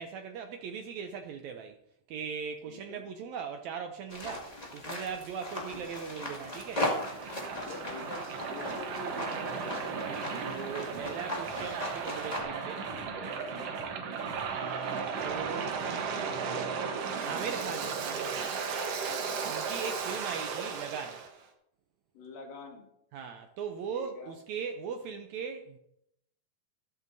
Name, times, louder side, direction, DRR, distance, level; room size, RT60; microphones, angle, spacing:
voice 1, 0.0-1.8 2.1-6.9 10.5-13.1 14.5-15.8 16.2-16.8 17.3-18.6 19.5-21.2 23.1-25.8, right 6 dB, 80° right, 1.6 m, -39 dB
voice 2, 2.7-3.0 7.5-8.2 8.5-10.0 13.5-13.8 19.1-19.5 22.1-22.9 23.9-24.3, left 4 dB, 80° left, 3.4 m, -45 dB
sound 1, 4.1-12.4, left 1 dB, 20° left, 1.2 m, -38 dB
Waves surf, 5.5-21.3, right 5 dB, 60° right, 1.7 m, -35 dB
sound 2, 10.9-11.7 12.0-14.6 14.8-16.6, left 1 dB, 45° left, 3.5 m, -55 dB
13.0 x 12.5 x 2.7 m
omnidirectional pair, 4.0 m